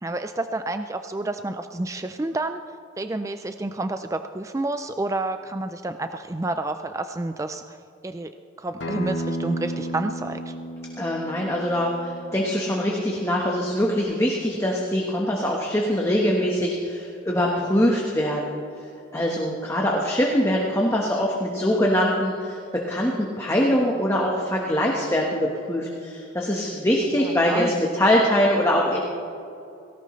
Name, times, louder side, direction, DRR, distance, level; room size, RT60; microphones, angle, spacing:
voice 1, 0.0-2.6 3.0-7.8 8.0-8.3 8.6-10.6 27.2-27.7, right 2 dB, 15° right, 8 dB, 0.3 m, -29 dB
Acoustic guitar, 8.8-14.0, right 1 dB, 65° left, 1.2 m, -34 dB
voice 2, 11.0-18.6 19.1-29.0, equal, 15° left, -2 dB, 1.2 m, -23 dB
18.0 x 17.5 x 3.2 m, 2.7 s
head